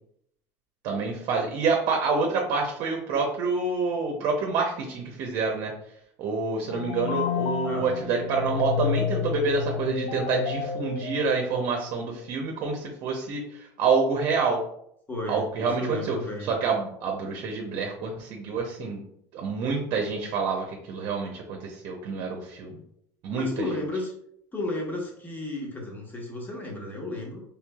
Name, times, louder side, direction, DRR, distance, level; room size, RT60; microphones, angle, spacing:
voice 1, 0.8-5.7 6.2-14.6 15.3-16.2 16.5-19.0 19.3-22.8 23.2-23.7, right 4 dB, 60° right, 1 dB, 0.8 m, -27 dB
sound 1, 6.6-12.1, left 7 dB, 90° left, 0.5 m, -30 dB
voice 2, 15.1-16.5 23.3-24.1 24.5-27.4, left 2 dB, 20° left, -1 dB, 1.4 m, -33 dB
4.5 x 3.4 x 2.4 m, 0.72 s
supercardioid pair, 90°, 9 cm